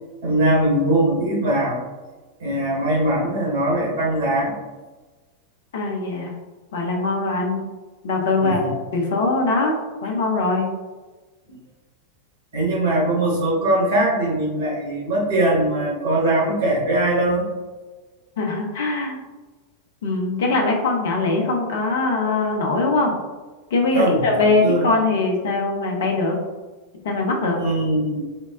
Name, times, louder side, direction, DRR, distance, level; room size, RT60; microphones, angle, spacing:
voice 1, 0.2-1.8 2.4-4.5 8.4-8.7 11.5-11.6 12.5-17.5 23.9-24.9 27.6-28.2, right 1 dB, 60° right, -5 dB, 1.2 m, -21 dB
voice 2, 5.7-6.3 6.7-7.6 8.0-8.6 8.9-10.7 18.4-19.2 20.0-23.2 23.7-26.4 27.0-27.6, left 3 dB, 60° left, 1 dB, 0.6 m, -21 dB
4.3 x 2.0 x 2.4 m, 1.3 s
figure-of-eight pair, 90°, 0 cm